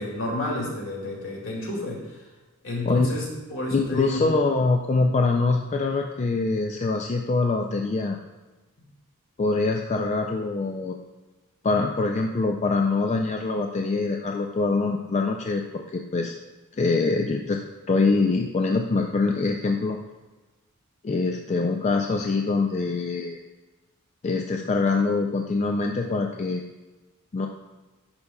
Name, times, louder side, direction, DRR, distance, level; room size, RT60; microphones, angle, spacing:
voice 1, 0.0-2.0 2.6-3.2 3.5-4.3, left 1 dB, 65° left, -2 dB, 2.1 m, -30 dB
voice 2, 3.7-8.2 9.4-10.9 11.6-16.3 16.8-17.6 17.9-20.0 21.0-23.4 24.2-26.6 27.3-27.5, left 3 dB, 30° left, 3 dB, 0.3 m, -24 dB
11.0 x 5.4 x 2.3 m, 1.2 s
head